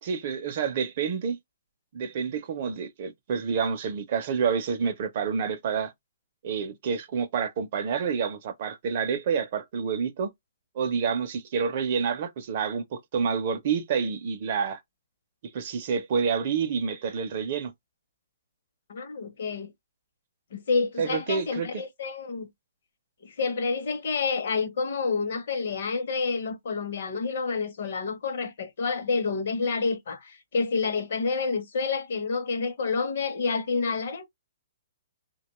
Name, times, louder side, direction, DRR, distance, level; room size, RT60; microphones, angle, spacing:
voice 1, 0.0-1.4 1.9-5.9 6.4-10.3 10.7-14.8 15.5-17.7 21.0-21.8, right 6 dB, 35° right, 0.5 m, -28 dB
voice 2, 18.9-19.7 20.5-22.5 23.2-34.3, left 4 dB, 50° left, 0.7 m, -29 dB
3.3 x 2.2 x 2.9 m
hypercardioid pair, 180°, 0 cm